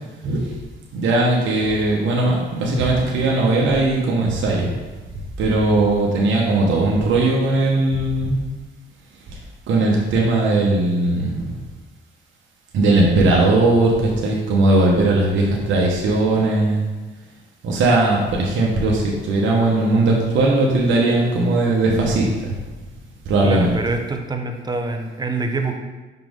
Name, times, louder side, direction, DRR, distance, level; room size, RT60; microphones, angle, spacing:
voice 1, 0.2-0.6 0.9-4.7 5.1-8.4 9.3-9.4 9.7-11.5 12.7-16.8 17.6-22.6 23.3-23.7, right 2 dB, 75° right, -2 dB, 1.2 m, -18 dB
voice 2, 23.4-25.7, right 3 dB, 20° right, 5 dB, 0.8 m, -25 dB
5.8 x 5.1 x 3.7 m, 1.2 s
cardioid pair, 90°, 20 cm